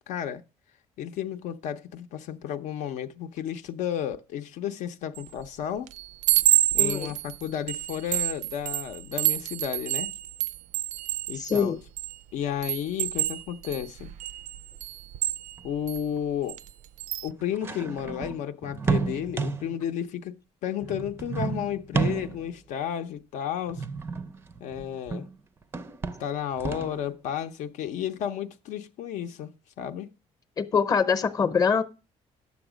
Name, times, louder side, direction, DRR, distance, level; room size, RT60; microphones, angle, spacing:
voice 1, 0.1-0.4 1.0-5.9 6.7-10.1 11.3-11.8 12.3-14.1 15.6-16.6 17.2-23.8 24.6-25.3 26.2-29.5 29.8-30.1, left 9 dB, 75° left, 0.6 m, -32 dB
Chime, 5.2-5.5 5.9-12.2 12.6-16.0 16.5-16.7 17.0-17.3, right 14 dB, 80° right, 0.4 m, -28 dB
voice 2, 6.8-7.1 11.3-11.8 30.6-31.8, left 6 dB, 30° left, 0.8 m, -24 dB
sound 1, 15.6-15.7 16.2-16.3 17.3-19.8 20.8-22.6 23.7-25.4 25.6-27.1, right 4 dB, 20° right, 0.4 m, -31 dB
9.7 x 7.2 x 5.0 m
cardioid pair, 170°, 13 cm